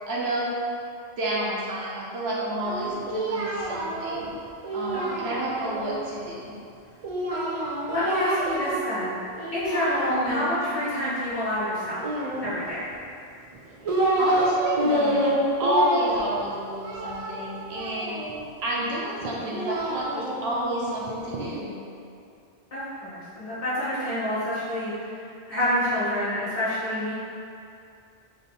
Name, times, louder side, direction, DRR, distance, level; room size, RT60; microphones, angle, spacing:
voice 1, 0.1-0.5 1.2-4.3 4.7-6.6 10.1-10.5 14.2-18.1 18.6-21.8, right 1 dB, 75° right, -5 dB, 1.0 m, -29 dB
Singing, 2.6-5.9 7.0-9.1 9.4-10.6 12.0-12.9 13.5-14.5 14.8-18.4 19.2-21.5, right 1 dB, 50° right, 0.4 m, -28 dB
voice 2, 7.9-9.2 9.5-12.0 12.4-12.8 22.7-27.1, equal, 35° left, -12 dB, 1.0 m, -28 dB
3.4 x 2.5 x 4.1 m, 2.5 s
omnidirectional pair, 1.1 m